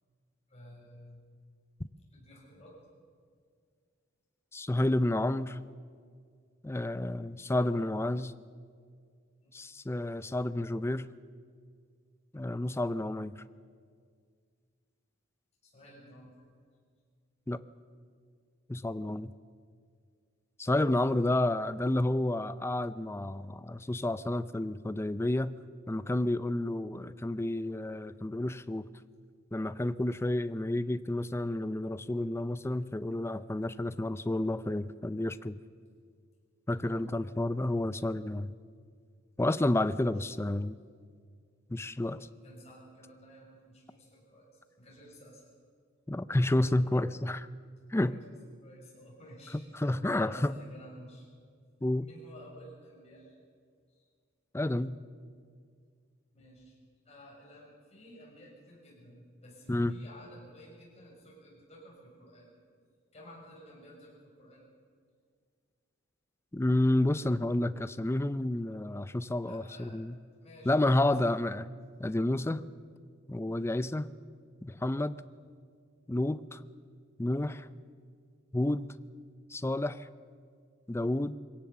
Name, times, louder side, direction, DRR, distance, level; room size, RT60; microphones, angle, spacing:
voice 1, 0.5-1.2 2.1-2.8 9.4-9.5 15.6-16.3 21.0-21.5 36.8-37.1 42.4-44.5 44.8-45.4 48.1-48.3 48.6-49.9 50.2-51.3 52.0-53.3 56.3-56.8 57.0-62.5 63.1-64.7 69.4-70.0 70.4-71.4, equal, 35° left, -3 dB, 6.7 m, -53 dB
voice 2, 4.5-5.6 6.6-8.3 9.5-11.1 12.3-13.4 17.5-17.6 18.7-19.3 20.6-25.5 25.9-28.9 29.5-35.6 36.7-38.5 39.4-40.8 41.7-42.3 46.1-47.5 47.9-48.2 49.7-50.6 51.8-52.1 54.5-55.0 59.7-60.0 66.5-70.2 70.7-71.7 72.0-72.7 73.3-74.1 74.6-75.2 76.1-76.6 77.2-77.7 78.5-79.0 79.5-80.1 80.9-81.3, left 1 dB, 15° left, 14 dB, 0.5 m, -30 dB
22.5 x 17.5 x 7.1 m, 2.1 s
head